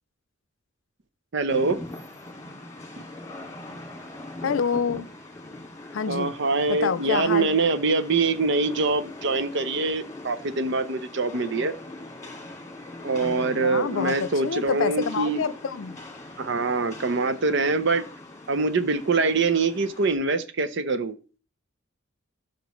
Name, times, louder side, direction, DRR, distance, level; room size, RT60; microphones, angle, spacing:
voice 1, 1.3-1.8 6.1-11.7 13.0-15.4 16.4-18.0 18.5-21.1, right 3 dB, 60° right, 0.7 m, -24 dB
Rain, 1.5-20.1, left 2 dB, 15° left, 2.1 m, -41 dB
voice 2, 4.4-5.1 5.9-6.3 6.7-7.5 13.2-16.0, left 6 dB, 75° left, 0.5 m, -27 dB
12.0 x 5.9 x 3.1 m
head